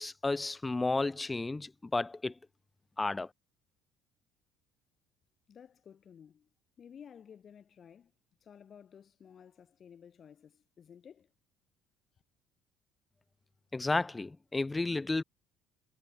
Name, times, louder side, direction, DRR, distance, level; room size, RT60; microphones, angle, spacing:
voice 1, 0.0-2.3 3.0-3.3 13.7-15.2, left 3 dB, 15° left, 0.3 m, -32 dB
voice 2, 5.5-6.5 6.8-8.1 8.4-11.3, left 8 dB, 40° left, 2.6 m, -54 dB
cardioid pair, 120°, 0 cm